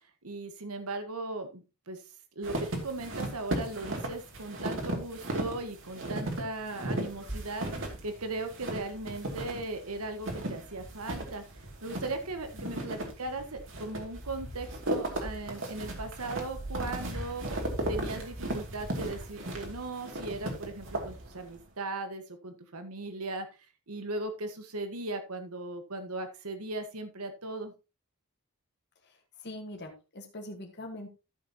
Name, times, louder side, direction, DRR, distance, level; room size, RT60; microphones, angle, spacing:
voice 1, 0.2-2.0 2.3-7.7 8.0-11.4 11.8-17.5 17.9-23.5 23.9-27.7, right 2 dB, 85° right, 7 dB, 1.5 m, -38 dB
sound 1, 2.4-21.6, right 1 dB, 60° right, 2.6 m, -36 dB
voice 2, 12.5-12.9 29.0-31.1, left 1 dB, 50° left, 3 dB, 1.6 m, -43 dB
13.5 x 6.8 x 2.9 m, 0.29 s
head